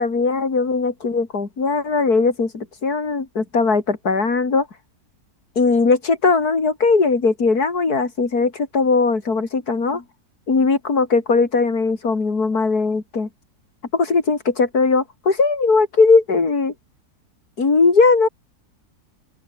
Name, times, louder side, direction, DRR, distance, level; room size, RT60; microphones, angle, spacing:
voice 1, 0.0-4.7 5.6-10.0 10.5-13.3 13.9-16.7 17.6-18.3, left 4 dB, 65° left, 3.7 m, -19 dB
open air
omnidirectional pair, 1.8 m